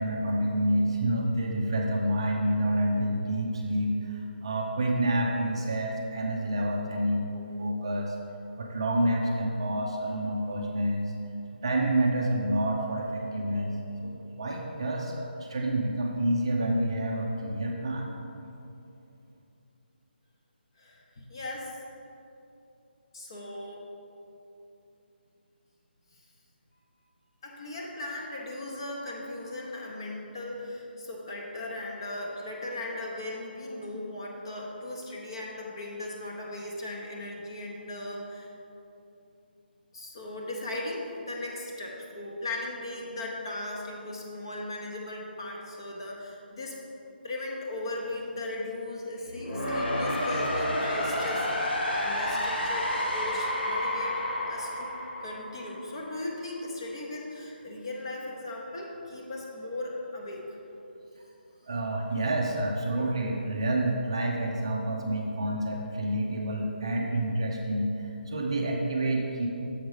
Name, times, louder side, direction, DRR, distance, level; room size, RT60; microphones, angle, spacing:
voice 1, 0.0-8.1 8.6-11.1 11.6-13.7 14.0-18.1 61.7-69.5, right 1 dB, 30° right, 0 dB, 0.5 m, -28 dB
voice 2, 20.8-21.8 23.1-23.9 27.4-38.5 39.9-46.8 47.2-54.2 54.5-60.5, left 2 dB, 25° left, -2 dB, 0.7 m, -37 dB
sound 1, 49.2-56.2, left 1 dB, 85° left, 1.6 m, -30 dB
7.2 x 5.1 x 4.8 m, 2.9 s
hypercardioid pair, 175°, 6 cm